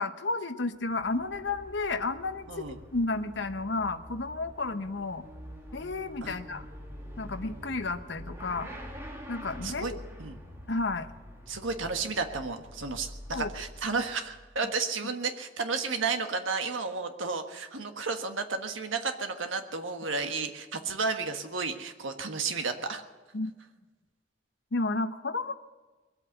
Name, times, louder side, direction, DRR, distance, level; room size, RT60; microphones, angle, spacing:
voice 1, 0.0-2.7 2.9-5.2 5.7-6.7 7.2-8.7 9.3-10.0 10.7-11.1 13.3-13.5 23.3-23.5 24.7-25.5, left 3 dB, 65° left, 9 dB, 0.9 m, -32 dB
Motorcycle / Accelerating revving vroom, 0.7-14.6, equal, 15° right, 2.3 m, -46 dB
voice 2, 11.5-23.0, right 4 dB, 80° right, 6 dB, 1.5 m, -32 dB
21.5 x 8.2 x 8.0 m, 1.3 s
head